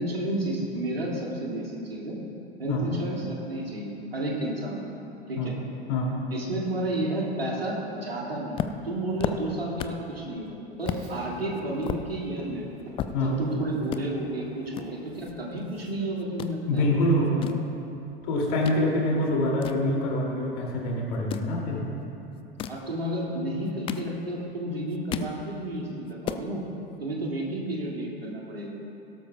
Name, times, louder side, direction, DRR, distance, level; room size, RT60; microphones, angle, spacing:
voice 1, 0.0-2.2 2.6-4.9 5.3-5.6 6.3-12.6 13.2-16.9 22.7-26.6 27.0-28.7, right 1 dB, 80° right, -3 dB, 2.3 m, -31 dB
sound 1, 8.5-10.1 10.4-10.5 10.8-11.1 11.5-13.5 13.8-14.0 14.7-15.9 16.2-16.5 17.1-18.8 19.2-20.5 21.1-21.5 22.4-22.9 23.5-24.5 24.8-25.4 25.8-25.9 26.1-26.5, left 9 dB, 20° left, 0.4 m, -34 dB
Frog, 10.9-16.1, right 2 dB, 55° right, 2.3 m, -45 dB
voice 2, 16.7-17.5 18.2-21.9, left 1 dB, 50° left, -2 dB, 2.7 m, -25 dB
17.5 x 12.5 x 2.3 m, 2.8 s
figure-of-eight pair, 85°, 29 cm